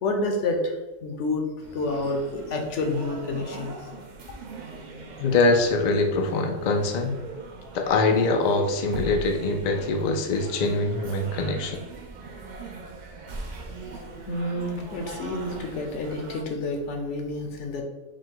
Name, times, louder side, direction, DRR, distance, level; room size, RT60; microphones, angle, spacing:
voice 1, 0.0-0.7 1.0-1.4 1.7-3.7 14.3-17.8, left 2 dB, 65° left, 3 dB, 1.0 m, -29 dB
sound 1, 1.6-16.4, right 2 dB, 60° right, 0.5 m, -41 dB
voice 2, 5.2-7.2 7.7-11.8, left 3 dB, 80° left, 3 dB, 0.3 m, -23 dB
5.2 x 2.2 x 3.7 m, 1.1 s
omnidirectional pair, 1.4 m